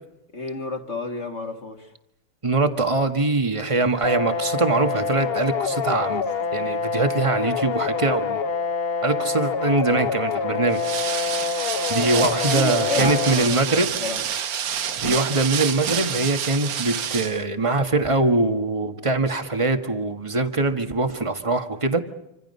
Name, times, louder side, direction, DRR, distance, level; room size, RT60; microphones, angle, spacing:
voice 1, 0.3-1.9 12.1-14.2, left 3 dB, 30° left, 4 dB, 2.2 m, -31 dB
voice 2, 2.4-6.2 6.5-8.4 9.0-11.6 11.9-13.9 15.0-22.0, right 3 dB, 15° right, 6 dB, 1.4 m, -23 dB
sound 1, 4.0-13.4, left 5 dB, 55° left, 0.6 m, -26 dB
sound 2, 10.7-17.4, right 8 dB, 65° right, 1.7 m, -28 dB
27.0 x 26.0 x 5.6 m, 0.88 s
omnidirectional pair, 2.4 m